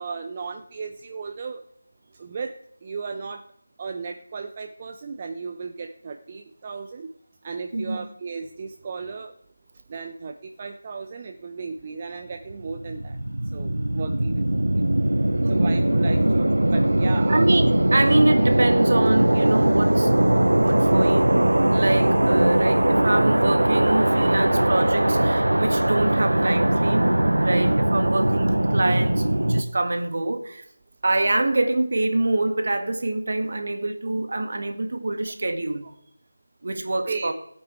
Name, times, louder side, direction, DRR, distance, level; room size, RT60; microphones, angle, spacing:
voice 1, 0.0-1.6 2.1-2.5 2.8-3.4 3.8-7.1 7.4-9.3 9.9-13.2 13.5-14.8 15.5-17.5 33.3-33.4 37.1-37.3, right 5 dB, 25° right, 0.6 m, -35 dB
voice 2, 7.7-8.1 15.4-15.8 17.3-20.1 20.5-30.6 31.0-35.9 36.6-37.3, right 2 dB, 50° right, 1.7 m, -25 dB
sound 1, 12.5-29.6, right 1 dB, 70° right, 1.3 m, -20 dB
17.5 x 8.7 x 4.5 m
figure-of-eight pair, 165°, 0 cm